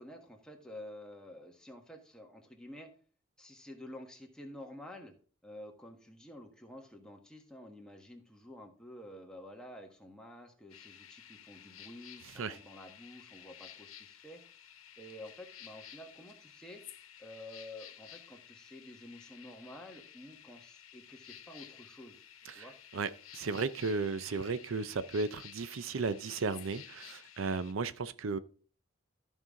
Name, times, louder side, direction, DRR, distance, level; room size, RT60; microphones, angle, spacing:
voice 1, 0.0-2.9 3.4-5.1 5.4-14.4 15.0-16.8 17.2-22.2 22.5-22.7, left 1 dB, 5° left, 1.4 m, -50 dB
sound 1, 10.7-27.7, left 10 dB, 85° left, 1.0 m, -53 dB
voice 2, 22.9-28.4, right 4 dB, 70° right, 0.5 m, -35 dB
13.5 x 5.4 x 3.7 m
head